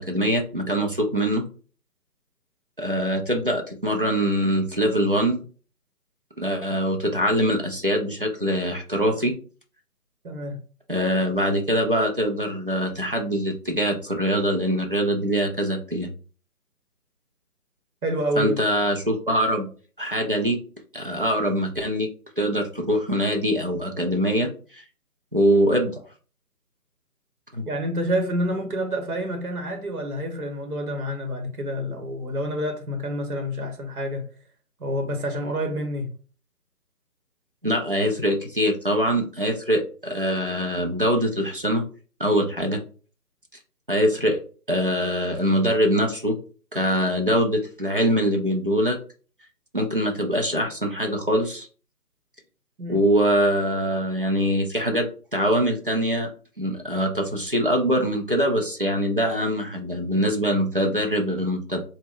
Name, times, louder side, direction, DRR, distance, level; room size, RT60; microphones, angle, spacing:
voice 1, 0.0-1.4 2.8-5.5 6.4-9.3 10.9-16.1 18.4-19.7 20.0-20.6 20.9-22.1 22.4-24.8 25.3-26.0 27.5-27.7 37.6-41.8 42.2-42.8 43.9-44.4 44.7-46.4 46.7-49.0 49.7-51.7 52.9-56.3 56.6-61.8, equal, 40° right, 0.4 m, -23 dB
voice 2, 10.2-10.6 18.0-18.6 27.7-34.3 34.8-36.1 52.8-53.0, equal, 70° right, 1.0 m, -28 dB
4.0 x 2.1 x 3.6 m
figure-of-eight pair, 155°, 47 cm